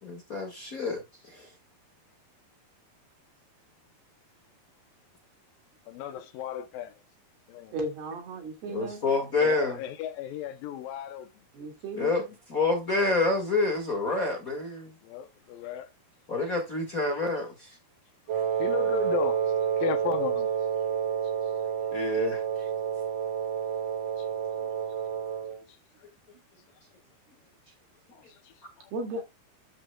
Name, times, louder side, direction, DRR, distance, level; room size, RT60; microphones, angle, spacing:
voice 1, 0.0-1.0 1.3-1.5 8.7-9.8 12.0-12.2 12.5-14.9 16.3-17.7 21.9-22.4, left 3 dB, 35° left, 1.5 m, -27 dB
voice 2, 5.9-6.9 7.5-7.7 9.4-11.3 11.6-11.7 15.0-15.9 18.6-19.4 19.8-20.5 24.2-24.3 28.1-28.9, left 10 dB, 75° left, 2.4 m, -35 dB
voice 3, 7.7-9.1 11.5-12.2 24.6-24.7 28.9-29.2, right 2 dB, 85° right, 4.3 m, -35 dB
Wind instrument woodwind instrument, 18.3-25.6, right 8 dB, 55° right, 1.9 m, -29 dB
12.0 x 6.0 x 2.3 m
omnidirectional pair, 4.4 m